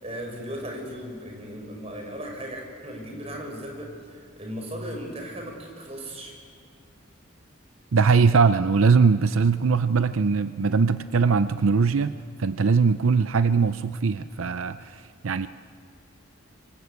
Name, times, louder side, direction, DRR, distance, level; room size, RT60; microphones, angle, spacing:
voice 1, 0.0-6.3, equal, 30° right, 1 dB, 5.8 m, -37 dB
voice 2, 7.9-15.5, right 5 dB, 80° right, 12 dB, 0.6 m, -21 dB
26.0 x 25.0 x 8.2 m, 2.1 s
head